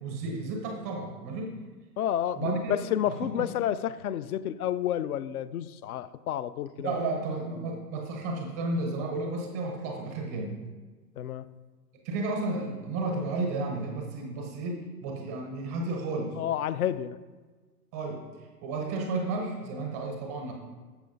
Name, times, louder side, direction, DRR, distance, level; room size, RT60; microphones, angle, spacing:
voice 1, 0.0-1.6 2.4-2.7 3.1-3.5 6.8-10.5 12.0-16.4 17.9-20.5, right 3 dB, 10° right, 0.4 m, -32 dB
voice 2, 2.0-7.0 11.2-11.5 16.4-17.2, left 10 dB, 65° left, 0.5 m, -30 dB
13.5 x 6.9 x 2.6 m
figure-of-eight pair, 120°, 49 cm